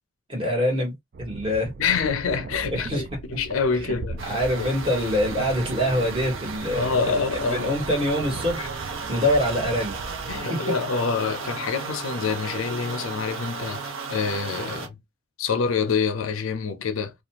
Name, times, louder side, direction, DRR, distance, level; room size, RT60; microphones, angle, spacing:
voice 1, 0.3-0.9 1.2-1.7 2.7-3.0 4.3-7.1 7.5-9.9, left 1 dB, 25° right, 1.3 m, -25 dB
sound 1, 1.1-10.4, right 3 dB, 45° right, 0.3 m, -38 dB
voice 2, 1.8-4.7 6.7-7.7 10.3-15.0 15.4-17.1, left 5 dB, 75° left, 0.5 m, -26 dB
sound 2, 4.2-14.9, right 5 dB, 65° right, 0.7 m, -35 dB
2.4 x 2.3 x 2.8 m
head